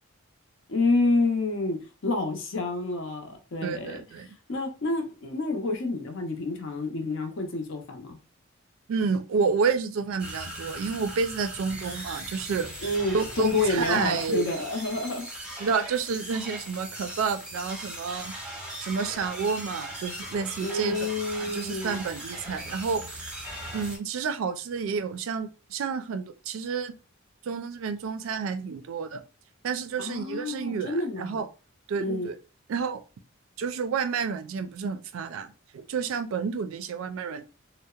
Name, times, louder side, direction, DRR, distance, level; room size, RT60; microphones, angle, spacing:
voice 1, 0.7-4.0 4.5-8.2 12.8-15.3 20.6-22.0 30.0-31.4 32.0-32.3, left 2 dB, 65° left, 0.6 m, -28 dB
voice 2, 3.6-4.4 8.9-12.7 13.1-14.5 15.6-18.3 18.8-23.0 23.7-26.9 27.4-29.2 29.6-31.5 31.9-32.4 32.7-33.0 33.6-37.4, right 5 dB, 75° right, 0.3 m, -30 dB
sound 1, 10.2-24.0, right 1 dB, 5° right, 0.7 m, -39 dB
2.7 x 2.0 x 2.3 m
head